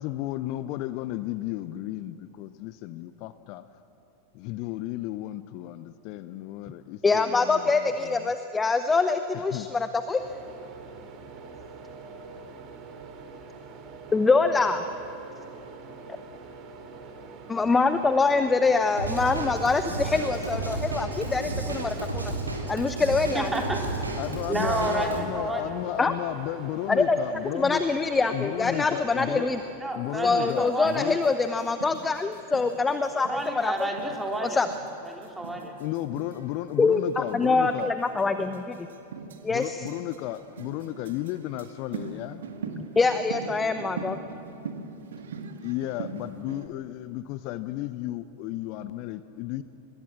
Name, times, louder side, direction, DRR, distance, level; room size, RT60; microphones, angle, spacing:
voice 1, 0.0-3.7 4.3-8.3 9.3-9.7 24.2-27.8 28.3-29.5 30.0-31.2 35.8-37.9 39.5-42.4 45.6-49.6, left 15 dB, 45° left, 14 dB, 0.7 m, -33 dB
voice 2, 7.0-10.2 14.1-14.8 17.5-22.3 22.7-23.5 26.0-26.1 26.9-27.2 27.5-29.6 30.2-33.9 34.4-34.7 36.8-38.9 39.4-39.9 43.0-44.2, left 4 dB, 15° left, 10 dB, 0.9 m, -24 dB
sound 1, 10.2-29.8, right 4 dB, 35° right, 2.8 m, -45 dB
Drum kit / Drum, 19.0-25.2, right 2 dB, 80° right, 3.7 m, -32 dB
voice 3, 23.3-23.8 24.5-25.7 29.8-31.1 33.2-34.6 35.0-35.8, right 1 dB, 5° right, 1 dB, 3.4 m, -30 dB
sound 2, 30.5-46.7, right 5 dB, 65° right, 1.7 m, -42 dB
25.0 x 21.0 x 7.4 m, 2.8 s
figure-of-eight pair, 90°, 0 cm